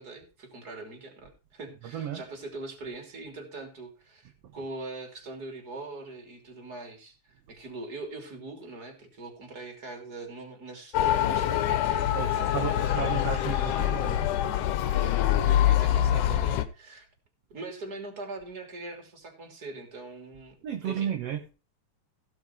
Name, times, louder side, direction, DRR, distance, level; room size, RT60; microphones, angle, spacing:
voice 1, 0.0-7.1 7.5-13.8 14.9-17.1 17.5-20.5 20.8-21.1, right 2 dB, 30° right, 3.4 m, -42 dB
voice 2, 1.9-2.2 12.1-14.3 20.6-21.5, right 9 dB, 60° right, 2.0 m, -33 dB
Motor vehicle (road) / Siren, 10.9-16.7, left 11 dB, 80° left, 2.4 m, -25 dB
17.0 x 5.9 x 4.6 m
omnidirectional pair, 3.5 m